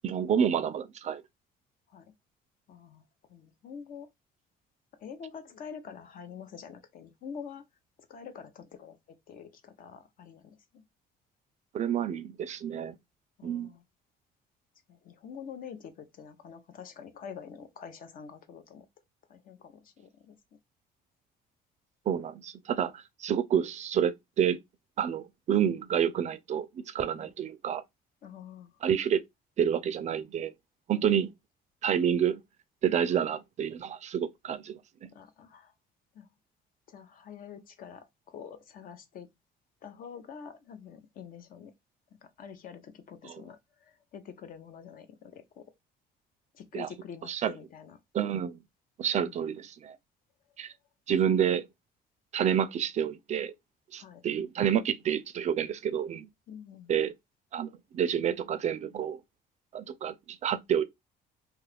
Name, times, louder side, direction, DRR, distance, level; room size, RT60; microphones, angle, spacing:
voice 1, 0.0-1.2 11.7-12.9 13.4-13.7 22.1-24.6 25.0-27.8 28.8-29.2 29.6-30.5 30.9-31.3 31.8-32.4 32.8-35.1 43.2-43.4 46.7-46.9 47.3-47.5 48.1-48.6 49.0-50.0 50.6-50.7 51.1-51.7 52.3-53.5 53.9-56.3 56.9-57.1 57.5-59.2 59.7-60.8, right 8 dB, 45° right, 0.4 m, -29 dB
voice 2, 2.7-3.0 3.3-4.1 5.0-7.6 8.1-9.0 9.3-10.8 11.9-12.1 13.4-13.8 14.9-18.8 19.3-20.4 27.2-27.3 28.2-28.7 30.9-31.3 33.1-33.3 35.1-35.7 36.1-36.3 36.9-39.3 39.8-41.7 42.2-45.6 46.5-48.0 49.2-49.6 51.2-51.3 54.0-54.2 56.5-57.0, left 7 dB, 55° left, 0.7 m, -46 dB
2.8 x 2.3 x 3.3 m
cardioid pair, 110°, 17 cm